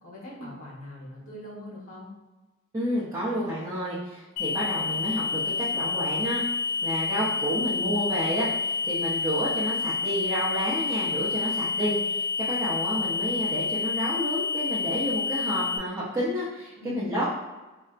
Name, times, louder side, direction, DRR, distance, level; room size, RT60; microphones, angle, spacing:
voice 1, 0.0-2.1 16.7-17.1, left 1 dB, 65° left, -5 dB, 1.2 m, -41 dB
voice 2, 2.7-6.4 6.8-17.3, equal, 15° right, -10 dB, 0.6 m, -30 dB
sound 1, 4.4-15.8, left 4 dB, 85° left, 0.5 m, -29 dB
4.4 x 2.0 x 2.4 m, 1.1 s
head